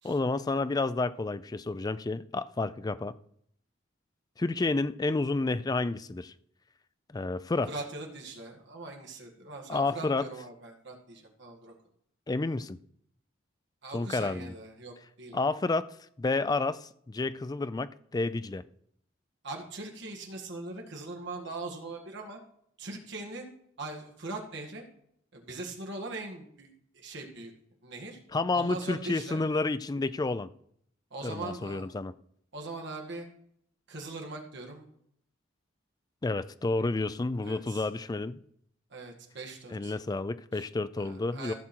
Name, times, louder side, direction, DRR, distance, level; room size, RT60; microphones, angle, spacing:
voice 1, 0.0-3.1 4.4-6.3 7.1-7.7 9.7-10.3 12.3-12.8 13.9-14.5 15.3-18.6 28.3-30.5 31.2-32.1 36.2-38.4 39.7-41.5, left 3 dB, 20° left, 0.3 m, -30 dB
voice 2, 7.7-11.7 13.8-15.4 19.4-22.4 22.8-23.5 23.8-24.8 25.3-26.7 26.9-27.5 27.8-28.2 28.5-29.4 31.1-31.9 32.5-33.3 33.9-34.9 37.4-37.9 38.9-39.9 40.5-40.7 41.0-41.5, right 2 dB, 60° right, 2.0 m, -41 dB
15.0 x 6.2 x 4.5 m
head